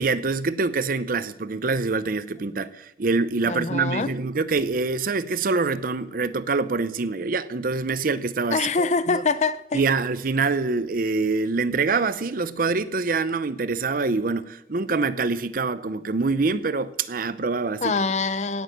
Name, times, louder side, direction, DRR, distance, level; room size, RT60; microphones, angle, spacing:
voice 1, 0.0-9.2 9.7-17.9, right 4 dB, 50° right, 0.7 m, -25 dB
voice 2, 3.4-4.1 8.5-9.8 17.8-18.6, left 4 dB, 40° left, 0.6 m, -24 dB
17.5 x 6.4 x 7.8 m
head